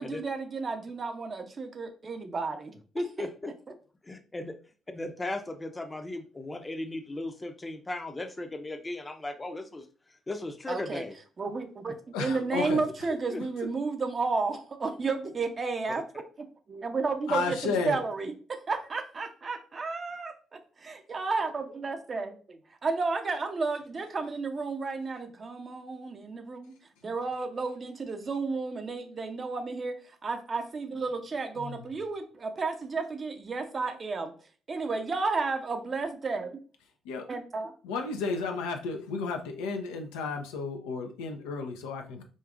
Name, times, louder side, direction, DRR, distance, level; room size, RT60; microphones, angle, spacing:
voice 1, 0.0-2.7 3.2-3.3 10.7-11.0 11.4-16.0 16.7-18.2 18.5-26.7 27.0-34.3 34.7-36.6 37.3-37.7, right 4 dB, 40° right, 6 dB, 0.7 m, -32 dB
voice 2, 2.9-3.5 4.0-4.5 4.9-11.2 13.3-13.4, left 2 dB, 25° left, 7 dB, 0.6 m, -36 dB
voice 3, 12.1-12.9 13.4-13.5 17.3-18.0 31.6-31.9 37.0-37.3 37.8-42.2, left 4 dB, 80° left, 4 dB, 0.5 m, -33 dB
5.1 x 2.4 x 2.4 m, 0.39 s
hypercardioid pair, 50°, 0 cm